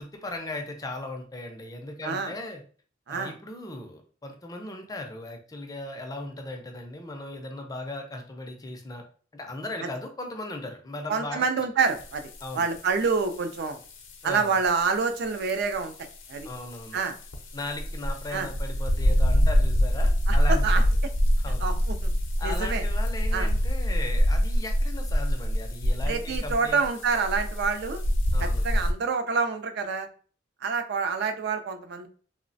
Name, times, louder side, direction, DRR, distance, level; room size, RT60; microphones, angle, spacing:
voice 1, 0.0-2.6 3.1-9.0 9.3-11.5 12.4-12.7 14.2-14.5 16.4-17.0 17.5-20.8 21.4-21.6 22.4-26.9 28.3-28.6, left 2 dB, 20° left, 4 dB, 0.4 m, -37 dB
voice 2, 2.0-2.3 3.1-3.3 11.1-13.8 14.2-16.5 16.9-17.1 18.3-18.5 20.3-20.8 21.6-22.1 22.4-22.8 23.3-23.5 26.1-28.0 28.4-30.1 30.6-32.1, right 5 dB, 60° right, 8 dB, 0.4 m, -27 dB
sound 1, 11.8-28.9, equal, 80° left, 0.5 m, -26 dB
3.0 x 2.0 x 2.6 m, 0.41 s
head